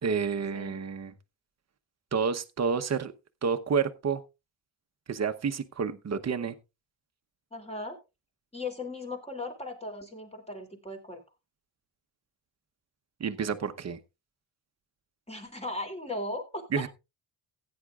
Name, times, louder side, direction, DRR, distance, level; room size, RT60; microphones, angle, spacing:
voice 1, 0.0-1.1 2.1-3.1 3.4-4.2 5.1-6.6 13.2-14.0 16.7-16.9, right 6 dB, 35° right, 1.0 m, -29 dB
voice 2, 7.5-8.0 8.5-11.2 15.3-16.8, left 2 dB, 15° left, 2.9 m, -37 dB
16.0 x 9.7 x 2.4 m
cardioid pair, 105°, 43 cm